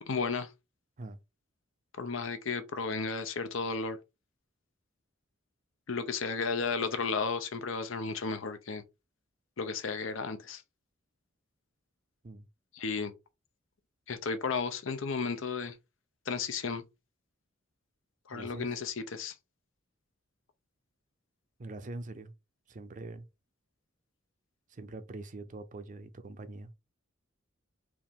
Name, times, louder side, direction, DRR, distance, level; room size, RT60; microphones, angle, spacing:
voice 1, 0.1-0.5 2.0-4.0 5.9-8.8 9.6-10.6 12.7-13.1 14.1-15.7 16.3-16.8 18.3-19.3, left 4 dB, 80° left, 0.7 m, -33 dB
voice 2, 18.3-18.7 21.6-22.3 22.7-23.3 24.7-26.7, right 2 dB, 40° right, 0.5 m, -43 dB
4.6 x 2.6 x 3.5 m
head